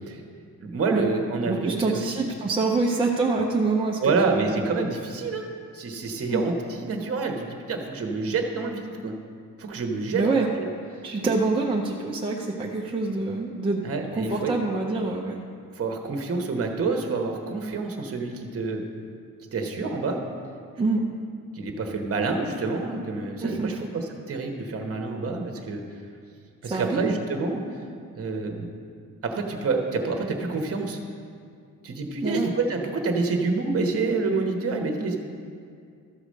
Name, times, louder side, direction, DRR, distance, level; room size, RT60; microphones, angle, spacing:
voice 1, 0.6-2.0 4.0-5.5 5.7-9.1 9.6-10.7 13.8-14.5 15.8-18.8 19.5-20.2 21.5-25.8 26.6-27.6 28.2-28.7 29.2-31.0 31.8-35.2, right 3 dB, 40° right, 3 dB, 1.1 m, -27 dB
voice 2, 1.4-4.7 6.3-6.4 10.1-10.5 11.0-13.9 14.1-15.4 20.8-21.0 23.4-23.8 26.6-27.1 32.2-32.5, right 3 dB, 15° right, -2 dB, 0.6 m, -26 dB
13.0 x 4.9 x 6.3 m, 2.3 s
wide cardioid pair, 175°, 35 cm